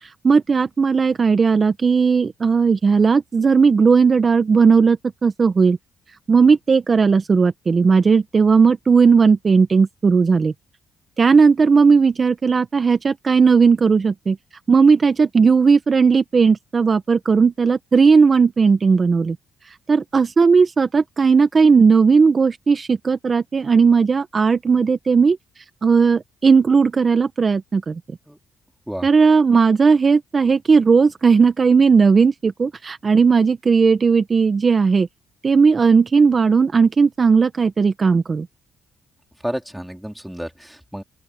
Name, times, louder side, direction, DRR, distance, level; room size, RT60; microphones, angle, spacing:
voice 1, 0.0-5.8 6.3-10.5 11.2-14.4 14.7-19.4 19.7-28.0 29.0-35.1 35.4-38.5, right 5 dB, 35° right, 1.1 m, -16 dB
voice 2, 39.4-41.0, equal, 5° right, 4.1 m, -31 dB
open air
cardioid pair, 90°, 0 cm